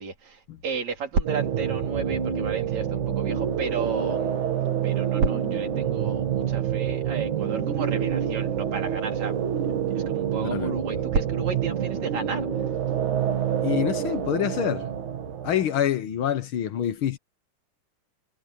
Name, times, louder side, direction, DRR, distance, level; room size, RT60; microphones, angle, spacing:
voice 1, 0.0-4.4 4.8-9.4 10.0-12.7, right 4 dB, 70° right, 5.5 m, -32 dB
sound 1, 1.2-15.7, right 8 dB, 90° right, 3.6 m, -27 dB
voice 2, 13.6-14.9 15.4-17.2, left 10 dB, 60° left, 1.4 m, -26 dB
omnidirectional pair, 3.3 m